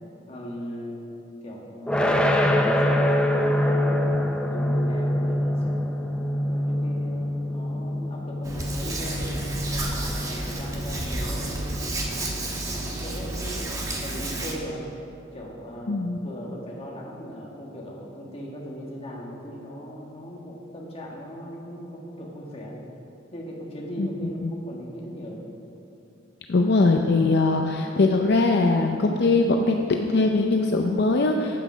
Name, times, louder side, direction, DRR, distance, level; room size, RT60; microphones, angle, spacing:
voice 1, 0.3-1.1 1.4-6.0 6.5-12.3 12.7-14.9 15.3-22.9 23.3-25.5, equal, 30° left, -2 dB, 1.7 m, -38 dB
sound 1, 1.9-12.8, left 1 dB, 5° left, 0.6 m, -25 dB
Hands, 8.4-14.5, right 2 dB, 20° right, 1.2 m, -31 dB
voice 2, 15.9-16.2 24.0-24.1 24.4-24.5 26.5-31.6, left 3 dB, 60° left, 3 dB, 0.5 m, -21 dB
9.2 x 8.2 x 6.2 m, 2.8 s
head